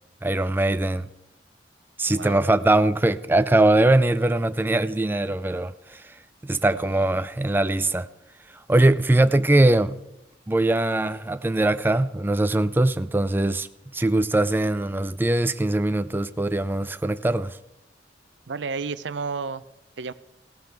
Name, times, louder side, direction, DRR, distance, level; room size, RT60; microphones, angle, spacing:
voice 1, 0.2-1.1 2.0-6.0 6.4-8.1 8.7-10.0 10.5-13.7 13.9-17.6, right 2 dB, 10° right, 0.4 m, -21 dB
voice 2, 2.1-2.4 6.6-7.0 18.5-19.6 20.0-20.1, right 4 dB, 80° right, 0.6 m, -32 dB
16.5 x 13.5 x 3.5 m
head